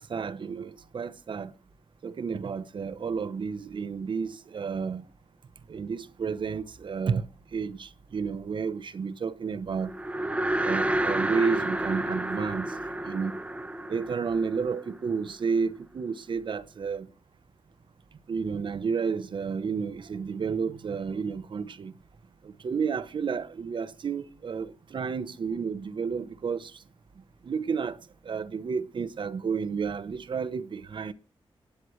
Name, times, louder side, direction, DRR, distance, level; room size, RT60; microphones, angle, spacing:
voice 1, 0.0-1.5 2.0-5.1 5.7-7.3 7.5-9.9 10.6-12.8 13.0-13.4 13.9-17.1 18.3-21.9 22.4-26.8 27.4-28.0 28.2-31.1, right 5 dB, 55° right, 0.9 m, -31 dB
sound 1, 9.9-15.3, right 1 dB, 15° right, 0.9 m, -30 dB
28.0 x 9.5 x 3.2 m
wide cardioid pair, 120°, 10 cm